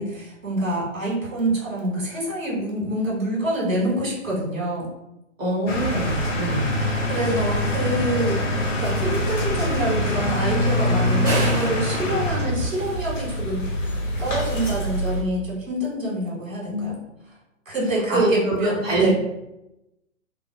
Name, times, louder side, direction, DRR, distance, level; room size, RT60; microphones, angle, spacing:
voice 1, 0.0-4.9 6.1-6.4 7.1-8.4 8.8-17.0 17.7-19.1, right 1 dB, 80° right, -4 dB, 1.2 m, -26 dB
voice 2, 5.4-6.7 16.7-16.9 18.1-19.1, right 1 dB, 30° right, -6 dB, 1.0 m, -25 dB
sound 1, 5.7-15.2, left 1 dB, 65° left, 0.9 m, -24 dB
sound 2, 11.3-13.4, right 1 dB, 5° right, 0.4 m, -30 dB
2.4 x 2.1 x 2.8 m, 0.90 s
figure-of-eight pair, 125°, 40 cm